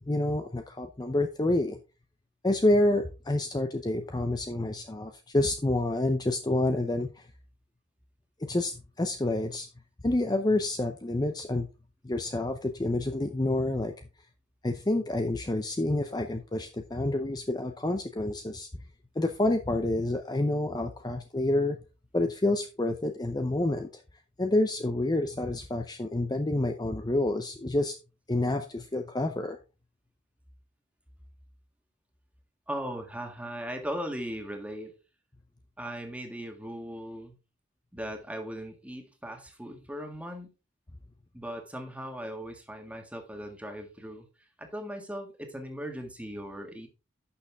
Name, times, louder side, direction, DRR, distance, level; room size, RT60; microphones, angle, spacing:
voice 1, 0.1-1.8 2.4-7.2 8.4-9.7 10.0-11.7 12.0-13.9 14.6-18.8 19.2-21.8 22.1-24.0 24.4-27.9 28.3-29.6, left 1 dB, 20° left, 6 dB, 0.6 m, -28 dB
voice 2, 32.7-35.0 35.8-37.4 37.9-40.5 41.3-44.3 44.6-46.9, equal, 5° right, 4 dB, 1.8 m, -38 dB
11.5 x 6.7 x 3.5 m, 0.30 s
head